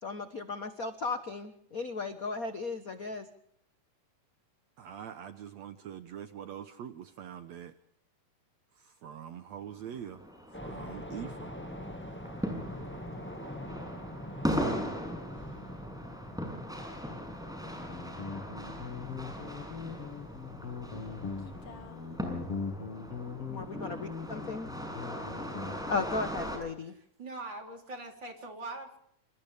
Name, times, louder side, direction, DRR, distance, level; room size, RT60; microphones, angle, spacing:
voice 1, 0.0-3.3 23.5-24.7 25.9-26.9, left 4 dB, 70° left, 8 dB, 0.8 m, -36 dB
voice 2, 4.8-7.7 8.8-10.2 10.6-11.5, right 9 dB, 65° right, 9 dB, 2.1 m, -44 dB
sound 1, 9.6-26.6, equal, ahead, 6.7 m, -39 dB
sound 2, 10.5-21.9, left 1 dB, 20° left, 0.3 m, -44 dB
Guitar, 17.6-26.1, left 5 dB, 55° left, 2.8 m, -41 dB
voice 3, 26.9-29.0, right 2 dB, 35° right, 2 dB, 4.2 m, -42 dB
28.5 x 27.5 x 3.5 m, 0.68 s
omnidirectional pair, 3.6 m